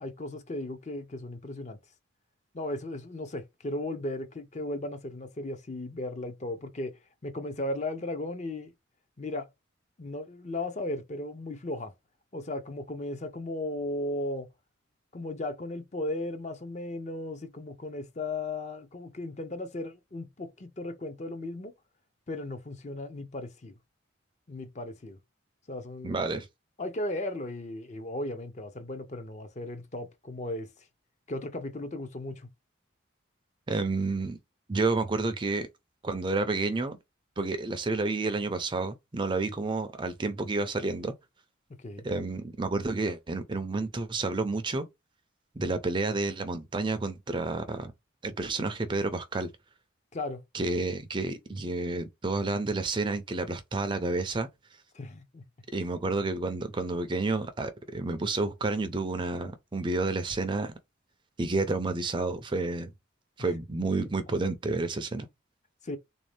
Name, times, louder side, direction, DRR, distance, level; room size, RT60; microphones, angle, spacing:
voice 1, 0.0-1.8 2.5-8.7 9.2-9.5 10.0-11.9 12.3-14.5 15.1-21.7 22.3-23.7 24.5-25.2 25.7-26.2 26.8-30.7 31.3-32.5 41.8-42.0 50.1-50.4 54.9-55.4 65.8-66.0, left 1 dB, 35° left, 0.6 m, -36 dB
voice 2, 26.0-26.5 33.7-34.4 34.7-35.7 36.0-37.0 37.4-41.1 42.0-44.9 45.6-47.9 48.2-49.5 50.5-54.5 55.7-60.7 61.4-62.9 63.4-65.3, right 3 dB, 25° right, 0.4 m, -30 dB
3.4 x 2.6 x 3.2 m
head